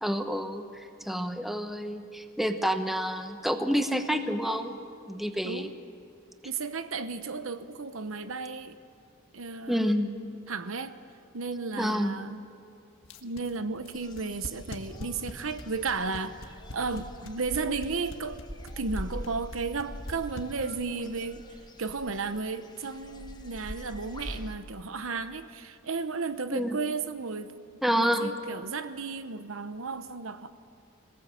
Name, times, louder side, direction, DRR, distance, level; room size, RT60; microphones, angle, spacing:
voice 1, 0.0-0.7 1.0-4.8 5.1-5.7 9.7-10.1 11.8-12.1 26.5-26.8 27.8-28.3, equal, ahead, 6 dB, 1.0 m, -28 dB
voice 2, 6.4-8.8 9.3-10.0 10.5-10.9 11.3-12.4 13.2-18.4 18.8-21.4 21.8-27.5 27.9-30.5, right 4 dB, 65° right, 10 dB, 1.0 m, -34 dB
sound 1, 13.0-21.0, left 1 dB, 70° left, 1.6 m, -42 dB
sound 2, 13.9-24.5, equal, 20° left, 1.3 m, -44 dB
26.0 x 18.0 x 7.8 m, 2.4 s
head